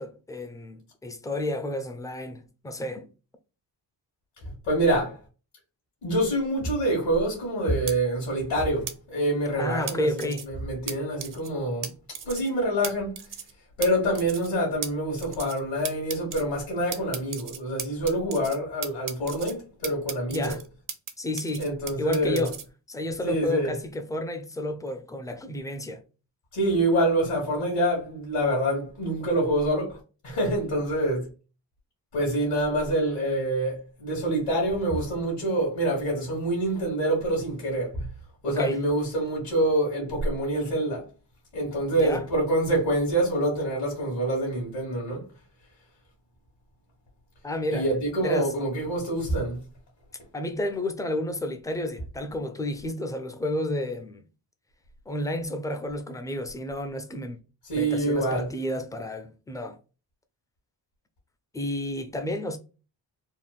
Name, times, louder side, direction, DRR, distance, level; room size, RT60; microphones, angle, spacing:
voice 1, 0.0-3.1 9.6-10.5 20.3-20.6 21.2-21.7 22.0-22.6 22.9-26.0 38.5-38.8 42.0-42.3 47.4-47.8 48.2-48.5 50.3-54.2 55.1-57.4 57.8-59.8 61.5-62.6, left 1 dB, 10° left, 0.4 m, -31 dB
voice 2, 4.6-5.2 6.0-11.9 12.2-13.2 13.8-20.5 21.6-22.5 23.2-23.7 26.5-30.0 30.2-31.3 32.1-38.1 38.4-41.1 41.5-45.2 47.7-49.6 57.7-58.4, right 1 dB, 70° left, 1.5 m, -26 dB
sound 1, 7.9-8.0 8.9-9.0 9.9-10.5 10.9-11.0 11.2-11.5 11.8-11.9 12.2-12.5 12.8-12.9 13.2-13.5 13.8-13.9 14.2-14.5 14.8-14.9 15.2-15.6 15.9-16.4 16.9-18.6 18.8-19.5 19.8-21.1 21.4-22.6, right 7 dB, 50° right, 0.6 m, -35 dB
3.6 x 2.1 x 2.4 m
cardioid pair, 90°, 44 cm